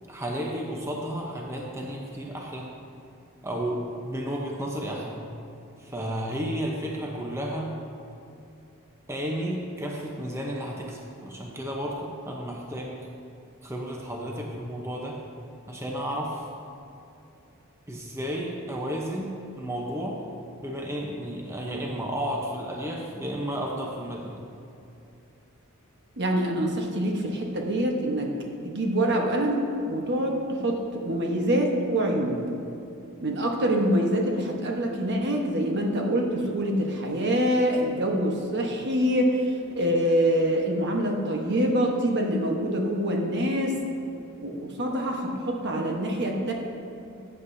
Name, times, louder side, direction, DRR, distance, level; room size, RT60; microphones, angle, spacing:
voice 1, 0.1-2.7 3.4-5.2 5.8-7.7 9.1-13.0 13.6-15.2 15.7-16.4 17.9-20.2 20.6-24.4, equal, 15° right, -1 dB, 0.8 m, -32 dB
voice 2, 26.2-28.3 28.6-32.4 33.2-43.8 44.4-46.5, equal, 55° right, 1 dB, 1.1 m, -25 dB
14.0 x 8.0 x 2.7 m, 2.7 s
head